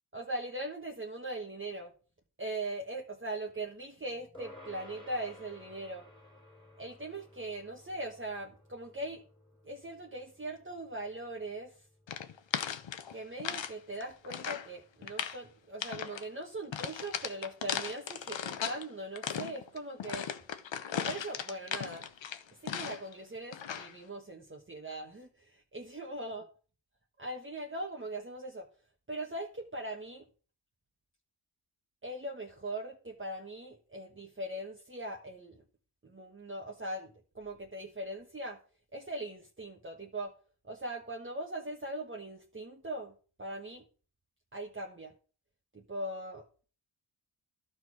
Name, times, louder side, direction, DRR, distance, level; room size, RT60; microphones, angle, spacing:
voice 1, 0.1-1.9 2.4-6.0 6.8-9.2 9.6-11.8 13.1-20.3 20.9-22.0 22.6-26.5 27.2-28.7 29.1-30.2 32.0-35.6 36.0-38.6 38.9-40.3 40.7-43.1 43.4-43.8 44.5-45.1 45.7-46.4, right 1 dB, 25° right, -1 dB, 1.4 m, -40 dB
sound 1, 4.3-14.0, left 2 dB, 10° left, 2.6 m, -56 dB
sound 2, 12.1-13.7 14.0-14.7 15.0-15.4 15.8-16.2 16.7-18.8 19.2-23.1 23.5-23.9, left 8 dB, 65° left, 0.9 m, -37 dB
12.0 x 4.4 x 4.7 m, 0.39 s
cardioid pair, 45°, 49 cm